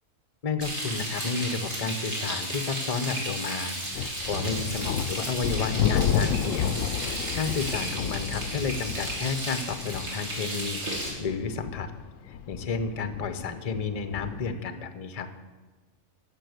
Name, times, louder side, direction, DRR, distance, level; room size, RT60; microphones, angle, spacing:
voice 1, 0.4-10.8 11.2-11.9 12.3-15.3, left 5 dB, 35° left, 10 dB, 0.7 m, -32 dB
Frying (food), 0.6-11.1, right 1 dB, 60° right, 3.3 m, -34 dB
sound 1, 3.9-14.5, left 8 dB, 80° left, 0.9 m, -31 dB
13.5 x 5.5 x 7.9 m, 1.3 s
omnidirectional pair, 1.3 m